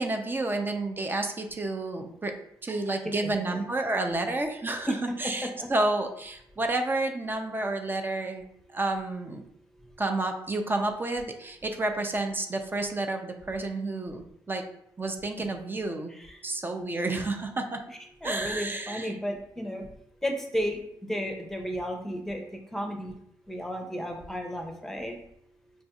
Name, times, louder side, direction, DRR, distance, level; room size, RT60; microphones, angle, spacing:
voice 1, 0.0-2.3 2.6-8.4 8.7-9.4 10.0-14.6 15.0-16.1 16.4-17.8 18.2-19.1, right 2 dB, 25° right, 5 dB, 0.5 m, -30 dB
voice 2, 3.0-3.6 4.9-5.0 5.4-5.7 16.1-16.4 18.2-19.9 20.2-20.8 21.1-22.4 22.7-23.1 23.5-25.2, equal, 5° left, 3 dB, 0.8 m, -33 dB
5.1 x 2.6 x 2.4 m, 0.73 s
cardioid pair, 70°, 8 cm